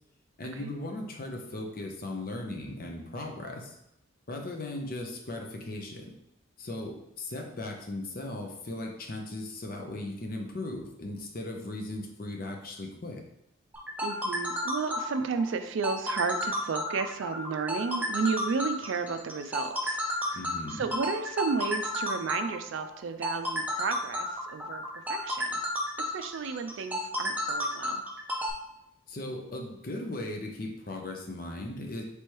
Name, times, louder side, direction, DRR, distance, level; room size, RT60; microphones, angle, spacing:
voice 1, 0.4-3.8 4.3-6.0 6.6-13.2 20.3-20.9 29.1-32.0, left 2 dB, 45° left, 2 dB, 0.6 m, -37 dB
sound 1, 13.7-28.5, left 1 dB, 10° right, 0.4 m, -32 dB
voice 2, 14.0-20.4 20.7-24.3 24.5-25.6 26.0-28.0, right 5 dB, 70° right, 8 dB, 0.3 m, -33 dB
3.4 x 3.1 x 4.5 m, 0.83 s
head